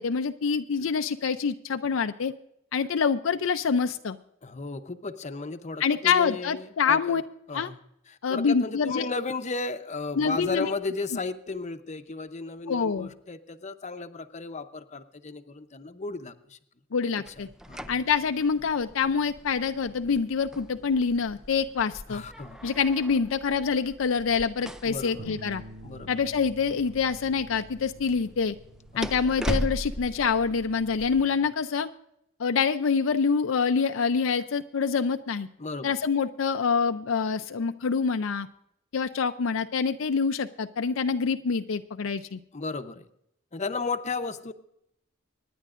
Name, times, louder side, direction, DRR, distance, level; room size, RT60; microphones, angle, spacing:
voice 1, 0.0-2.3 2.7-4.2 5.8-7.2 7.5-7.7 8.2-9.1 10.2-10.7 12.7-13.1 16.9-17.5 17.9-22.2 22.6-25.6 26.1-28.6 29.0-31.9 32.4-35.5 35.8-38.5 38.9-42.4, left 5 dB, 70° left, 8 dB, 0.5 m, -26 dB
voice 2, 4.4-7.2 7.5-7.8 8.1-16.6 17.4-18.0 22.1-22.7 24.8-25.4 25.8-26.1 28.9-29.3 35.6-36.0 42.5-43.1 43.5-44.5, left 3 dB, 35° left, 9 dB, 0.7 m, -34 dB
sound 1, 17.3-31.2, equal, 5° right, 0.4 m, -39 dB
sound 2, 25.2-31.4, right 1 dB, 75° right, 0.9 m, -49 dB
25.0 x 10.0 x 2.5 m, 0.77 s
head